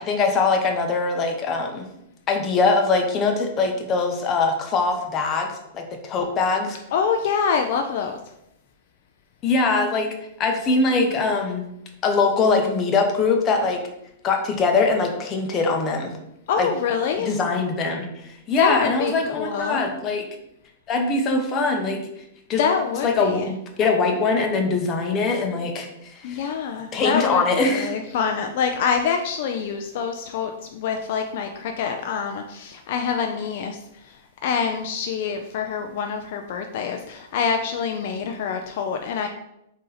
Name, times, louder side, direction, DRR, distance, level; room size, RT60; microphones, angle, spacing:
voice 1, 0.0-1.9 2.3-6.8 9.4-10.1 10.4-11.6 12.0-13.8 14.2-16.1 16.6-16.7 17.2-20.3 20.9-22.0 22.5-22.6 23.0-26.4 26.9-27.9, left 4 dB, 25° left, 3 dB, 0.7 m, -22 dB
voice 2, 6.9-8.2 16.5-17.3 18.6-19.9 22.6-23.5 26.2-39.3, left 6 dB, 55° left, 4 dB, 0.4 m, -26 dB
3.9 x 2.7 x 4.0 m, 0.83 s
hypercardioid pair, 140°, 0 cm